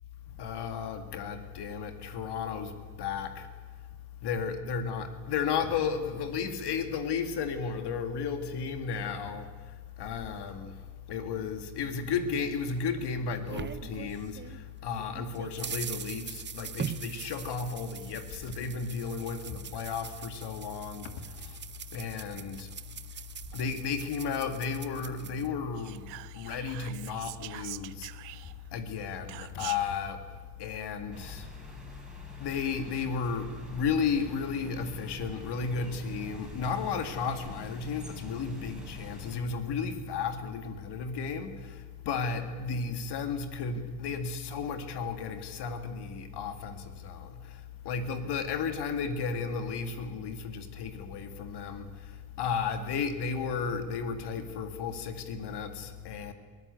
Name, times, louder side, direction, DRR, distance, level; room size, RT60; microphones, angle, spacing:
voice 1, 0.4-3.5 4.2-9.5 10.0-10.8 11.1-21.6 21.9-22.7 23.5-26.1 26.3-28.1 28.7-30.2 30.6-31.5 32.4-56.3, left 5 dB, 55° left, 2.2 m, -34 dB
sound 1, 12.7-14.6 15.0-25.5, right 8 dB, 25° right, 0.6 m, -42 dB
Whispering, 25.8-28.8 29.3-30.0, right 22 dB, 85° right, 0.7 m, -44 dB
sound 2, 31.1-39.4, equal, ahead, 5.3 m, -46 dB
23.0 x 15.5 x 8.2 m
supercardioid pair, 85°, 48 cm